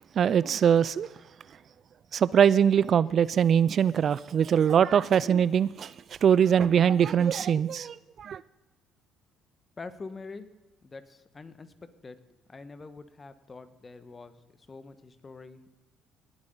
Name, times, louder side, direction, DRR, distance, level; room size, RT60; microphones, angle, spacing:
voice 1, 0.2-1.1 2.1-5.9 6.2-8.4, right 8 dB, 50° right, 0.3 m, -22 dB
voice 2, 9.8-10.5 10.8-11.8 12.0-12.2 12.5-15.7, left 3 dB, 30° left, 1.2 m, -45 dB
19.0 x 8.7 x 3.8 m
supercardioid pair, 65°, 0 cm